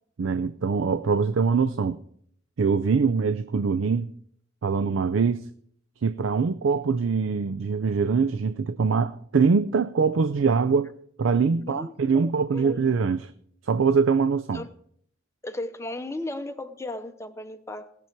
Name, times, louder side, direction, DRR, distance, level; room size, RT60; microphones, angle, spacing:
voice 1, 0.2-2.0 2.6-4.1 4.6-5.5 6.0-13.3 13.6-14.6, right 5 dB, 80° right, 0.5 m, -23 dB
voice 2, 11.6-12.9 14.5-14.7 15.4-17.9, left 2 dB, 15° left, 0.8 m, -36 dB
18.0 x 7.0 x 4.6 m
head